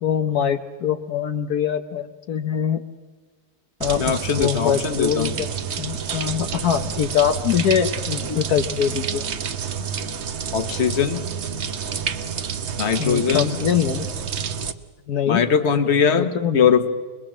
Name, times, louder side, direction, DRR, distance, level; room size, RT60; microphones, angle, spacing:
voice 1, 0.0-2.8 3.8-5.5 5.8-9.2 13.0-14.1 15.1-15.4 16.2-16.6, left 9 dB, 70° left, 7 dB, 1.3 m, -23 dB
sound 1, 3.8-14.7, right 7 dB, 50° right, 1.1 m, -29 dB
voice 2, 4.0-5.3 9.8-9.9 10.5-11.3 12.8-13.6 15.3-16.9, left 7 dB, 45° left, 9 dB, 1.5 m, -21 dB
25.5 x 21.5 x 7.5 m, 1.4 s
omnidirectional pair, 1.7 m